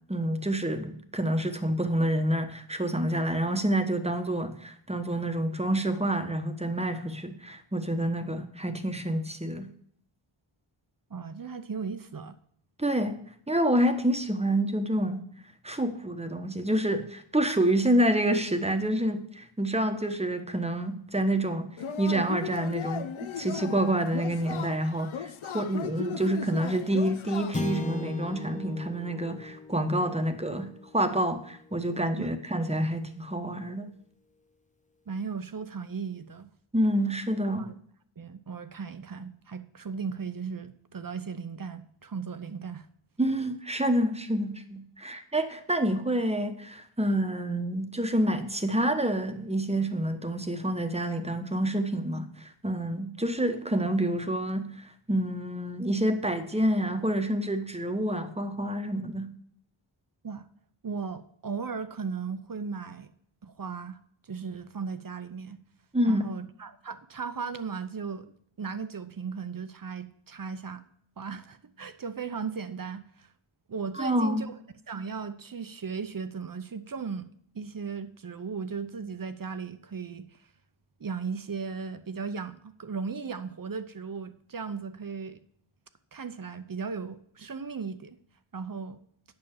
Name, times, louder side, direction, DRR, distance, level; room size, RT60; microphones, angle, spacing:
voice 1, 0.1-9.7 12.8-13.2 13.5-15.2 15.6-30.7 30.9-33.9 36.7-37.7 43.2-59.3 65.9-66.3 74.0-74.5, right 1 dB, 10° right, 7 dB, 1.1 m, -28 dB
voice 2, 11.1-12.4 32.2-32.3 35.1-36.5 37.6-37.7 38.2-42.9 60.2-60.5 60.8-63.1 63.4-64.0 64.2-65.6 66.0-68.3 68.6-70.8 71.2-73.3 73.7-74.6 74.9-77.3 77.5-80.4 81.0-85.4 86.1-88.2 88.5-89.0, right 5 dB, 40° right, 11 dB, 0.8 m, -36 dB
Yell / Cheering, 21.8-27.9, left 8 dB, 70° left, 0.8 m, -37 dB
sound 1, 27.5-32.0, left 3 dB, 15° left, 0.7 m, -37 dB
8.9 x 6.2 x 7.2 m, 0.63 s
wide cardioid pair, 70°, 50 cm